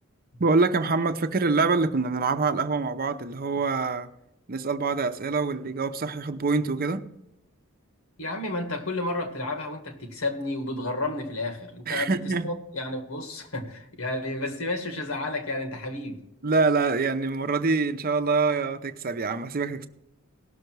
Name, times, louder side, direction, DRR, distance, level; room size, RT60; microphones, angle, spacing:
voice 1, 0.4-4.1 4.5-7.0 11.9-12.5 16.4-19.9, right 4 dB, 45° right, 0.7 m, -25 dB
voice 2, 8.2-16.2, left 2 dB, 85° left, 1.9 m, -31 dB
18.0 x 6.7 x 4.7 m
head